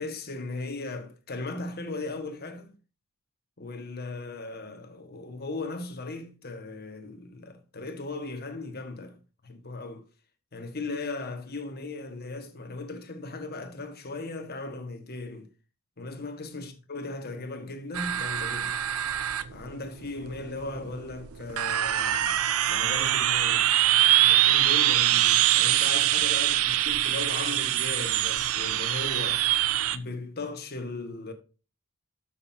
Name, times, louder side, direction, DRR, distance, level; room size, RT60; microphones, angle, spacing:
voice 1, 0.0-2.8 3.6-10.0 10.5-15.5 16.0-18.8 19.5-22.3 22.7-23.8 24.2-29.4 29.9-31.3, left 3 dB, 45° left, 1.5 m, -37 dB
sound 1, 17.9-30.0, right 12 dB, 80° right, 0.6 m, -24 dB
13.0 x 6.6 x 2.7 m
head